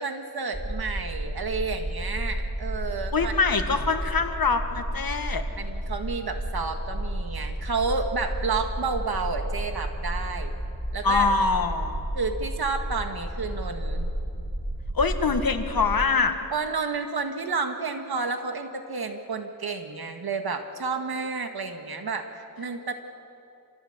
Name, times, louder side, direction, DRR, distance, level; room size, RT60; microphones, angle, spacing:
voice 1, 0.0-3.3 5.6-10.5 10.9-11.3 12.1-14.1 16.5-22.9, right 4 dB, 85° right, 5 dB, 1.9 m, -30 dB
sound 1, 0.5-16.1, right 1 dB, 5° right, 2.4 m, -32 dB
voice 2, 3.1-5.4 11.0-12.0 14.9-16.4, left 4 dB, 70° left, 7 dB, 1.7 m, -24 dB
27.5 x 16.0 x 8.1 m, 2.6 s
cardioid pair, 50°, 36 cm